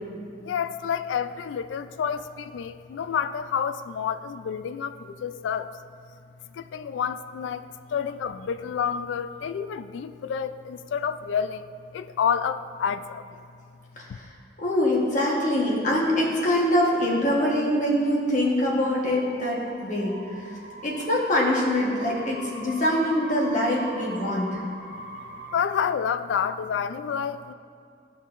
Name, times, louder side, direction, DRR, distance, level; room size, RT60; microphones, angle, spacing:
voice 1, 0.4-5.7 6.5-13.4 14.1-14.2 25.5-27.5, left 7 dB, 80° left, 12 dB, 0.3 m, -29 dB
voice 2, 14.0-14.3 14.6-24.6, left 1 dB, 40° left, -3 dB, 1.2 m, -24 dB
sound 1, 17.6-25.7, right 1 dB, 45° right, 1.0 m, -43 dB
13.0 x 5.4 x 2.5 m, 2.4 s
head